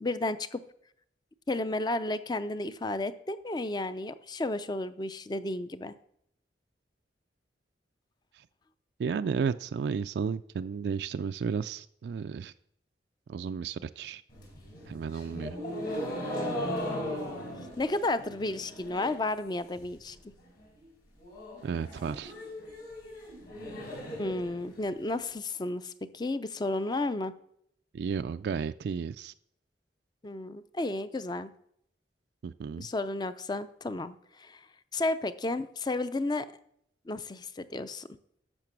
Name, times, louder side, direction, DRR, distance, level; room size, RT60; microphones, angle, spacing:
voice 1, 0.0-0.6 1.5-6.0 17.8-20.2 24.2-27.3 30.2-31.5 32.8-34.7 34.9-36.5 37.1-38.1, left 2 dB, 25° left, 13 dB, 0.5 m, -32 dB
voice 2, 9.0-12.5 13.3-14.2 14.9-15.5 21.6-22.3 27.9-29.3 32.4-32.9, right 6 dB, 65° right, 10 dB, 0.3 m, -33 dB
sound 1, 14.3-19.3 19.6-20.1 20.4-20.5 20.8-20.9 21.2-25.2, equal, 60° left, 5.1 m, -38 dB
10.5 x 6.7 x 6.0 m, 0.72 s
head